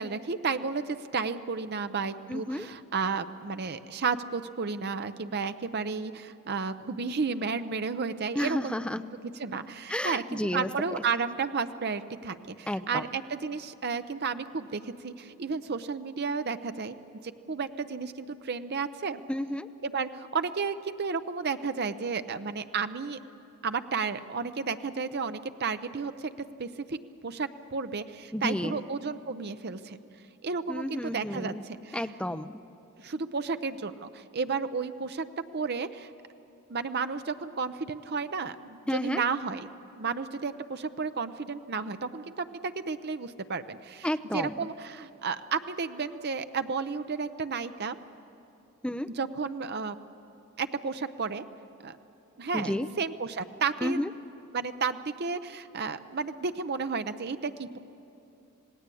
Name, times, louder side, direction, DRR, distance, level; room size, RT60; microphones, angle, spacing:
voice 1, 0.0-8.8 9.4-10.2 10.5-16.9 17.5-19.2 19.8-23.2 23.6-26.3 26.6-27.0 27.2-30.0 30.4-31.5 31.8-32.0 33.0-35.2 35.5-36.1 36.7-39.7 40.0-44.1 44.3-47.9 49.2-50.0 50.6-51.4 51.8-52.0 52.4-54.0 54.5-57.8, right 5 dB, 50° right, 10 dB, 0.7 m, -32 dB
voice 2, 2.3-2.7 8.3-9.0 9.9-10.7 12.7-13.0 19.3-19.7 28.3-28.8 30.7-31.6 31.9-32.6 38.9-39.2 44.0-44.7 48.8-49.1 52.5-52.9 53.8-54.1, left 1 dB, 5° left, 10 dB, 0.5 m, -31 dB
27.5 x 18.0 x 8.4 m, 2.8 s
head